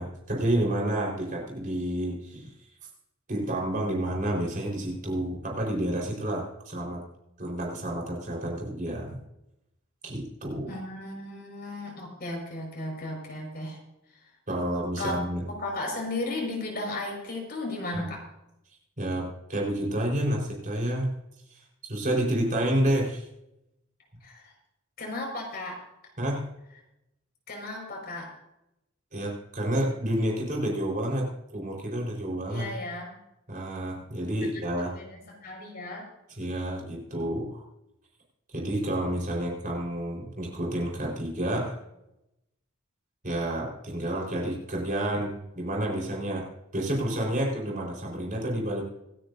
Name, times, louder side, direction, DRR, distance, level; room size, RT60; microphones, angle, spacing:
voice 1, 0.0-2.5 3.3-7.0 7.4-9.2 10.0-10.7 14.5-15.4 19.0-21.1 21.9-23.3 26.2-26.4 29.1-32.7 33.5-34.9 36.4-37.6 38.5-41.8 43.2-46.5 46.7-48.8, right 1 dB, 40° right, -1 dB, 4.5 m, -29 dB
voice 2, 10.7-13.8 14.1-14.3 15.0-15.1 15.5-18.2 24.2-24.5 25.0-25.8 27.5-28.3 32.5-33.2 34.8-36.1, left 2 dB, 45° left, 0 dB, 5.4 m, -35 dB
26.0 x 10.0 x 2.7 m, 0.85 s
head